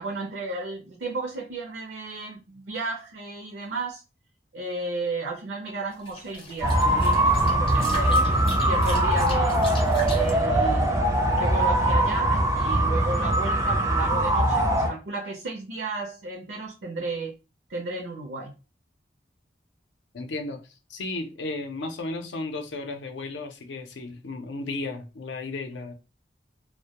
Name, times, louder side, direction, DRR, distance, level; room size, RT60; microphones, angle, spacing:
voice 1, 0.0-4.0 4.5-9.6 10.0-17.3 17.7-18.5, right 3 dB, 70° right, 0.5 m, -33 dB
sound 1, 5.9-10.3, left 1 dB, 30° left, 0.6 m, -38 dB
sound 2, 6.6-14.9, right 1 dB, 15° right, 0.4 m, -22 dB
voice 2, 20.1-20.6 20.9-25.9, left 2 dB, 80° left, 0.5 m, -34 dB
2.1 x 2.0 x 2.8 m
head